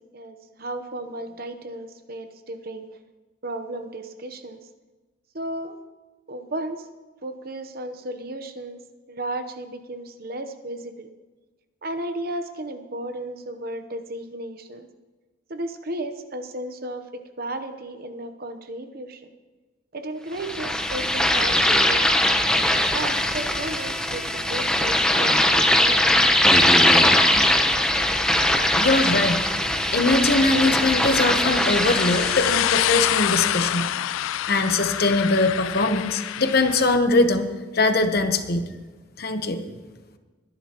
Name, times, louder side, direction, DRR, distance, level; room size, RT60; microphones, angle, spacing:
voice 1, 0.0-2.9 3.4-4.6 5.3-5.8 6.3-6.9 7.2-8.8 9.1-11.1 11.8-14.9 15.5-19.2 19.9-22.3 22.9-26.3, right 1 dB, 50° right, 8 dB, 0.9 m, -34 dB
sound 1, 20.4-32.6, left 1 dB, 5° left, 0.8 m, -20 dB
voice 2, 28.8-29.4 29.9-33.9 34.5-37.5 37.7-38.7 39.2-39.6, left 2 dB, 50° left, 7 dB, 1.0 m, -21 dB
sound 2, 29.2-37.0, left 12 dB, 90° left, 0.3 m, -28 dB
22.0 x 11.0 x 3.0 m, 1.3 s
head